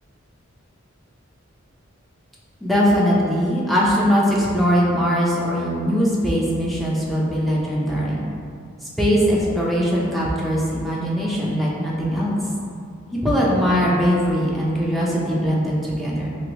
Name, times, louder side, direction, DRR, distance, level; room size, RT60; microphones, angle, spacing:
voice 1, 2.6-8.2 9.0-12.4 13.1-16.4, equal, ahead, -6 dB, 0.4 m, -21 dB
3.0 x 2.8 x 3.0 m, 2.4 s
head